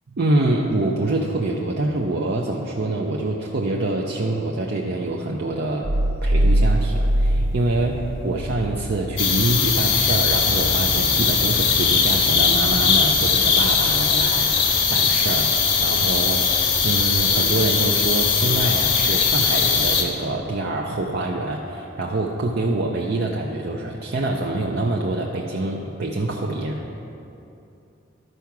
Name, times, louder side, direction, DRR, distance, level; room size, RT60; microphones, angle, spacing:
voice 1, 0.1-5.9 6.2-16.5 16.8-26.8, right 2 dB, 55° right, -1 dB, 0.6 m, -25 dB
sound 1, 5.8-8.8, right 1 dB, 85° right, 0.8 m, -21 dB
sound 2, 7.3-13.2, right 1 dB, 5° left, 0.6 m, -34 dB
sound 3, 9.2-20.0, left 5 dB, 65° left, 1.0 m, -20 dB
12.0 x 4.7 x 6.0 m, 2.8 s
head